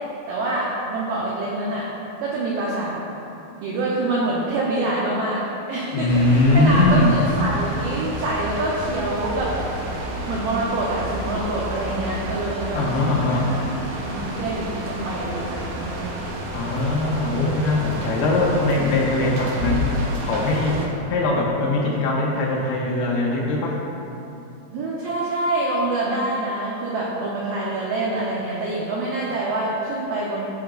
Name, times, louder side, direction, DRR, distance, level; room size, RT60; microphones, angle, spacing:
voice 1, 0.3-1.9 2.2-3.0 3.6-9.6 10.3-16.1 24.7-30.5, right 2 dB, 90° right, -5 dB, 1.9 m, -26 dB
voice 2, 5.9-7.2 12.7-13.5 16.5-20.0 20.2-20.8 21.1-23.8, left 2 dB, 75° left, -3 dB, 2.6 m, -21 dB
sound 1, 6.1-20.9, equal, 70° right, 2.5 m, -30 dB
15.5 x 5.7 x 2.5 m, 2.8 s
omnidirectional pair, 5.2 m